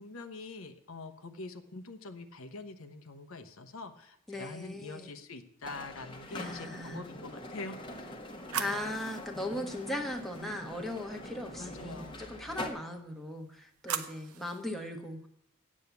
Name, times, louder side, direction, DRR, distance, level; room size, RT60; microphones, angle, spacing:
voice 1, 0.0-7.8 11.6-12.2, left 3 dB, 75° left, 8 dB, 1.0 m, -44 dB
voice 2, 4.3-5.1 6.3-7.0 8.6-15.3, left 1 dB, ahead, 2 dB, 1.1 m, -38 dB
sound 1, 5.6-12.7, left 1 dB, 20° left, 1.2 m, -44 dB
sound 2, 7.7-10.8 13.2-14.7, right 7 dB, 85° right, 0.9 m, -42 dB
8.7 x 7.4 x 8.1 m, 0.74 s
head